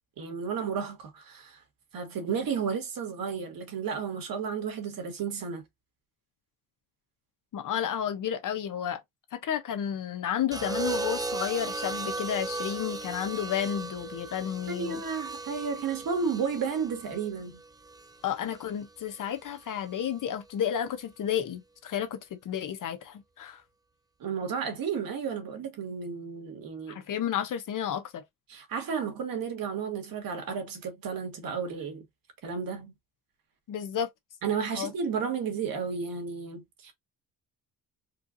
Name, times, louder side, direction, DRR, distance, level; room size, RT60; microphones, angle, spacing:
voice 1, 0.2-1.6 1.9-5.6 14.7-17.6 24.2-27.0 28.5-32.0 32.4-32.9 34.4-36.9, right 6 dB, 65° right, 1.8 m, -32 dB
voice 2, 7.5-9.0 9.3-15.0 18.2-22.2 22.4-23.6 26.9-28.2 33.7-34.1 34.7-34.9, left 9 dB, 55° left, 0.9 m, -31 dB
sound 1, 10.5-18.7 19.9-20.3, right 3 dB, 10° right, 0.4 m, -36 dB
4.5 x 2.5 x 2.6 m
cardioid pair, 115°, 37 cm